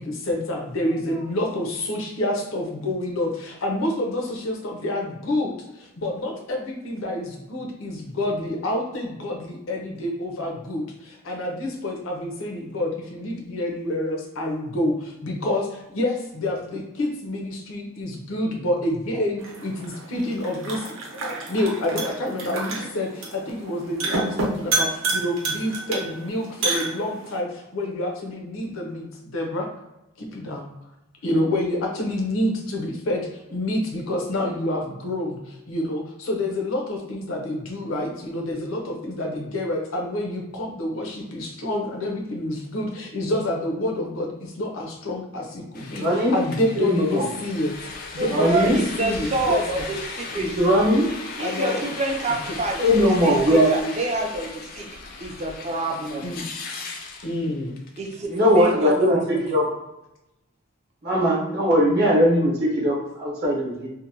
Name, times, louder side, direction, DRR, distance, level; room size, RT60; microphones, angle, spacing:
voice 1, 0.0-29.7 30.2-30.7 31.2-47.7 48.1-49.9 51.4-51.8 56.2-56.5 57.2-57.7, left 1 dB, 90° left, 1 dB, 0.6 m, -28 dB
sound 1, 19.4-27.4, right 3 dB, 80° right, 0.7 m, -29 dB
sound 2, 45.7-58.6, left 3 dB, 45° left, 0.3 m, -37 dB
voice 2, 45.9-46.3 46.8-47.3 48.3-48.8 50.3-51.1 52.8-53.7 58.3-59.7 61.0-63.9, equal, 50° right, -4 dB, 0.7 m, -20 dB
voice 3, 48.2-50.0 50.3-50.6 51.4-54.9 55.2-56.3 58.0-59.4, right 2 dB, 35° right, 2 dB, 0.4 m, -27 dB
2.7 x 2.1 x 2.6 m, 0.92 s
head